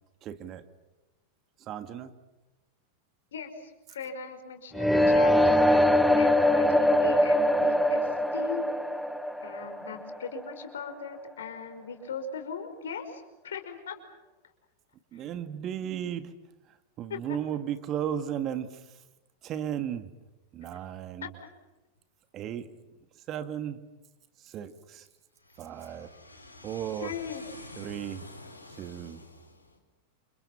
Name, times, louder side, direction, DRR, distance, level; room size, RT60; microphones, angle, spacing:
voice 1, 0.2-0.6 1.6-2.1 15.1-16.3 17.0-18.8 19.4-20.1 20.5-21.3 22.3-22.7 23.3-23.8 24.4-25.1 25.6-26.1 26.6-27.1 27.8-28.3 28.8-29.2, right 10 dB, 35° right, 10 dB, 2.3 m, -35 dB
voice 2, 3.3-5.9 6.2-8.7 9.4-14.0 17.1-17.2 21.2-21.3 27.0-27.4, left 5 dB, 65° left, 6 dB, 5.5 m, -39 dB
sound 1, 4.7-10.7, left 1 dB, ahead, 1.3 m, -23 dB
voice 3, 25.4-29.8, left 2 dB, 85° left, 3 dB, 5.6 m, -49 dB
30.0 x 29.0 x 5.9 m, 1.0 s
figure-of-eight pair, 90°, 0 cm